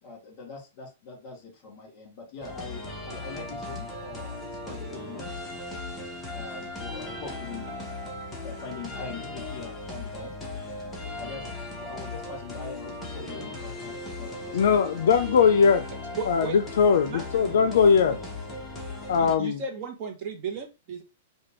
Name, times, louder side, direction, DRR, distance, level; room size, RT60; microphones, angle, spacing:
voice 1, 0.0-5.3 6.3-7.8 8.4-10.4 11.2-11.5 11.8-14.8, left 4 dB, 35° left, 2.1 m, -42 dB
sound 1, 2.4-19.4, left 2 dB, 5° left, 0.8 m, -37 dB
voice 2, 14.5-15.9 16.3-18.2 19.1-19.6, left 6 dB, 70° left, 0.4 m, -20 dB
voice 3, 16.2-16.6 17.1-17.2 19.2-21.0, right 5 dB, 30° right, 0.7 m, -34 dB
5.0 x 2.2 x 3.0 m
supercardioid pair, 170°, 0 cm